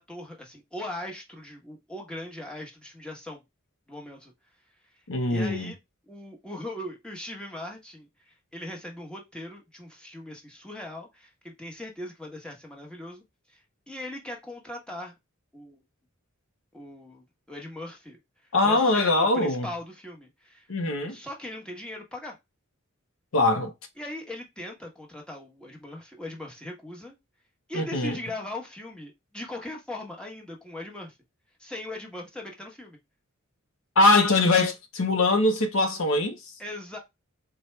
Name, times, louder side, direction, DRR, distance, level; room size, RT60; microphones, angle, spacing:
voice 1, 0.0-3.4 3.9-4.3 4.8-4.9 5.3-5.8 6.1-15.1 15.5-15.8 16.7-18.2 18.6-20.7 21.1-22.3 24.0-27.1 27.7-31.2 31.6-33.0 36.6-37.0, left 1 dB, 5° left, 1.1 m, -39 dB
voice 2, 5.1-5.7 18.5-19.7 20.7-21.2 23.3-23.7 27.7-28.2 34.0-36.5, left 2 dB, 65° left, 0.8 m, -22 dB
4.2 x 2.3 x 3.2 m
head